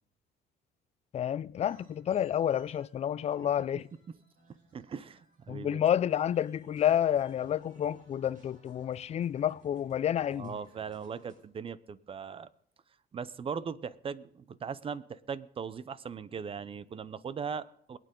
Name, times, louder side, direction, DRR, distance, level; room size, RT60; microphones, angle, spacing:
voice 1, 1.1-3.9 5.5-10.5, left 10 dB, 40° left, 0.4 m, -29 dB
sound 1, 1.6-5.7 6.0-11.4, right 1 dB, 50° right, 5.2 m, -61 dB
voice 2, 4.7-5.8 10.3-12.5 13.1-18.0, right 6 dB, 35° right, 0.6 m, -39 dB
22.0 x 9.2 x 3.8 m
cardioid pair, 110°, 17 cm